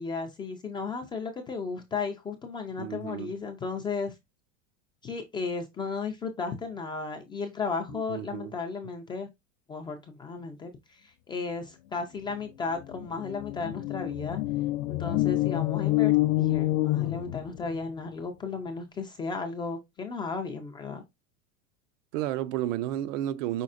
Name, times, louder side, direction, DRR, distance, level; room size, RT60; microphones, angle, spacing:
voice 1, 0.0-4.1 5.0-9.3 9.7-14.4 14.9-16.1 16.4-21.0, left 4 dB, 15° left, 0.3 m, -34 dB
voice 2, 2.8-3.3 7.9-8.6 22.1-23.6, right 13 dB, 70° right, 0.6 m, -32 dB
sound 1, 12.4-12.5 12.8-17.8, left 17 dB, 85° left, 0.5 m, -27 dB
5.4 x 4.1 x 2.4 m
supercardioid pair, 145°, 39 cm